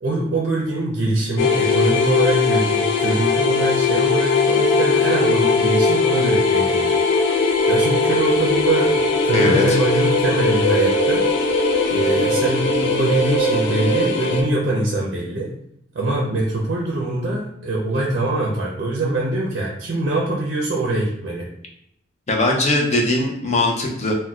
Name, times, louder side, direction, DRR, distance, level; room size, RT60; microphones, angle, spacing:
voice 1, 0.0-7.3 7.7-11.2 11.9-15.5 15.9-21.5, right 2 dB, 55° right, -3 dB, 0.5 m, -23 dB
sound 1, 1.4-14.4, left 3 dB, 90° left, 0.5 m, -19 dB
voice 2, 9.3-9.8 22.3-24.1, left 2 dB, 35° left, 0 dB, 0.5 m, -20 dB
3.9 x 2.1 x 2.3 m, 0.74 s
head